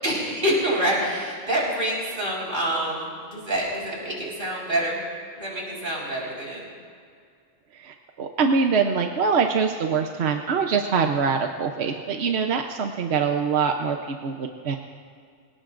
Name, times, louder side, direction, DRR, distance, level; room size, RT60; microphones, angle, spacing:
voice 1, 0.0-5.0 5.4-6.7, right 1 dB, 50° right, -5 dB, 4.9 m, -26 dB
voice 2, 7.8-14.8, right 5 dB, 70° right, 4 dB, 1.1 m, -24 dB
25.5 x 17.5 x 2.5 m, 2.2 s
omnidirectional pair, 1.1 m